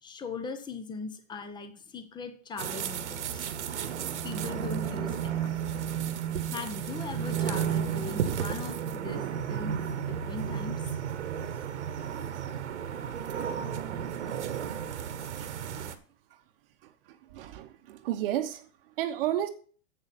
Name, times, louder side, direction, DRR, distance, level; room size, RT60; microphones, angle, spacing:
voice 1, 0.0-3.5 4.2-5.6 6.5-10.9, left 4 dB, 15° left, 1.0 m, -40 dB
sound 1, 2.6-16.0, right 8 dB, 85° right, 1.4 m, -33 dB
voice 2, 15.1-15.6 16.3-16.4 16.8-19.5, right 12 dB, 55° right, 1.0 m, -33 dB
7.8 x 7.3 x 5.9 m
hypercardioid pair, 140°, 34 cm